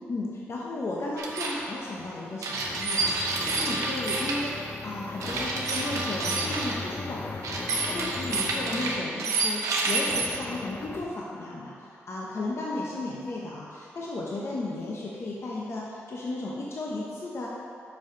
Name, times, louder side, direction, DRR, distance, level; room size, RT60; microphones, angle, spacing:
voice 1, 0.1-17.5, left 2 dB, 55° left, -4 dB, 0.9 m, -34 dB
sound 1, 1.2-1.6 2.4-4.4 5.2-6.7 7.4-10.2, right 3 dB, 80° right, 0.9 m, -28 dB
sound 2, 2.0-9.2 10.1-11.2, left 4 dB, 40° left, 0.4 m, -38 dB
5.6 x 5.2 x 5.1 m, 2.6 s
supercardioid pair, 50°, 5 cm